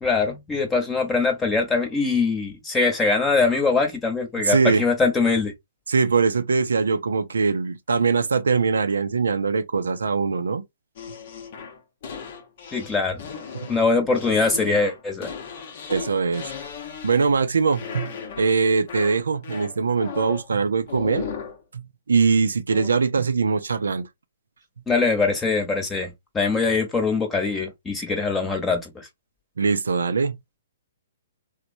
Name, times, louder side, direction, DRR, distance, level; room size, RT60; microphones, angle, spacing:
voice 1, 0.0-5.5 12.7-13.2 13.7-15.3 24.9-29.1, left 4 dB, 10° left, 0.9 m, -22 dB
voice 2, 4.4-4.8 5.9-10.6 13.5-13.7 15.9-16.5 17.0-21.2 21.7-24.1 29.6-30.4, right 5 dB, 80° right, 0.4 m, -22 dB
sound 1, 11.0-17.4 17.7-18.6 18.9-20.5 20.9-21.6 22.7-22.9, left 6 dB, 50° left, 0.7 m, -36 dB
3.1 x 2.1 x 2.6 m
hypercardioid pair, 135°, 0 cm